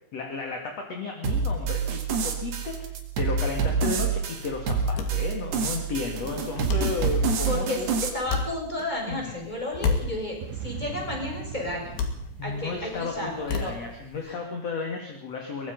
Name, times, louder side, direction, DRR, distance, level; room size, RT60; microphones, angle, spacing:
voice 1, 0.1-7.9 9.1-9.5 12.4-15.7, left 4 dB, 45° left, 2 dB, 2.9 m, -33 dB
sound 1, 1.2-8.1, right 5 dB, 65° right, 4.3 m, -27 dB
sound 2, 3.8-14.3, left 4 dB, 65° left, 4.2 m, -34 dB
voice 2, 7.5-7.8 8.1-11.9 12.4-13.7 14.2-14.4, left 1 dB, 10° left, 0 dB, 6.2 m, -32 dB
sound 3, 10.4-13.9, right 8 dB, 85° right, 3.5 m, -40 dB
23.5 x 21.0 x 5.5 m, 0.71 s
omnidirectional pair, 5.2 m